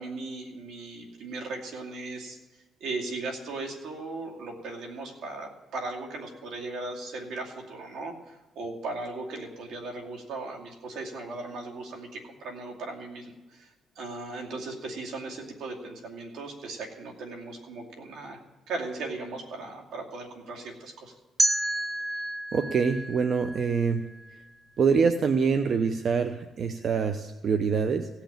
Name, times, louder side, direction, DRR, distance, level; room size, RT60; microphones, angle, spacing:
voice 1, 0.0-2.4 2.8-13.7 14.0-18.4 18.7-21.1, right 3 dB, 80° right, 1 dB, 2.5 m, -37 dB
sound 1, 21.4-24.3, right 1 dB, 25° right, 0.7 m, -30 dB
voice 2, 22.5-24.0 24.8-28.1, right 5 dB, 55° right, 8 dB, 0.8 m, -25 dB
16.5 x 5.9 x 8.8 m, 1.2 s
cardioid pair, 90°, 0 cm